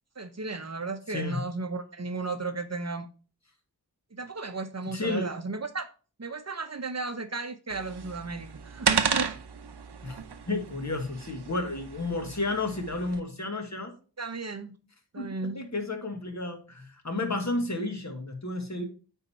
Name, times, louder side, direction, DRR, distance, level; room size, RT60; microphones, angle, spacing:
voice 1, 0.2-3.1 4.1-5.9 6.2-9.4 14.2-14.8 15.1-15.6, right 3 dB, 40° right, 9 dB, 0.8 m, -34 dB
voice 2, 1.1-1.4 4.8-5.3 10.0-10.2 10.5-13.9 15.2-18.8, left 2 dB, 40° left, 4 dB, 1.6 m, -32 dB
sound 1, 7.7-13.2, right 6 dB, 75° right, 0.8 m, -33 dB
9.2 x 3.7 x 4.3 m, 0.38 s
wide cardioid pair, 65°, 41 cm